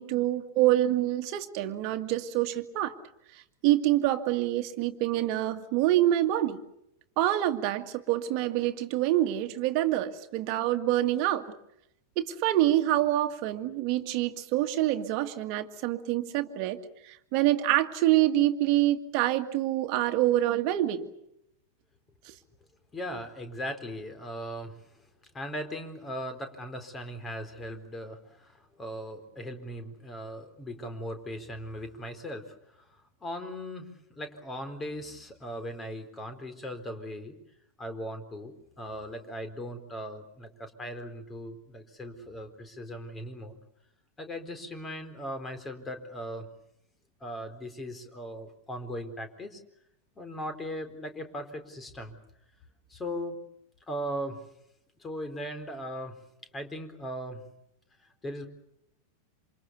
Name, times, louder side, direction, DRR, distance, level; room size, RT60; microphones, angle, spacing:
voice 1, 0.0-2.9 3.3-6.6 7.2-11.5 12.2-21.1 22.3-22.4, right 14 dB, 45° right, 7 dB, 2.0 m, -26 dB
voice 2, 22.9-25.1 25.3-37.4 37.8-43.6 44.2-46.5 47.2-49.6 50.2-52.2 52.9-53.4 53.9-54.4 55.0-56.2 56.5-57.4 58.0-58.5, equal, 15° left, 8 dB, 4.2 m, -38 dB
28.0 x 27.0 x 7.0 m, 0.79 s
figure-of-eight pair, 90°, 0 cm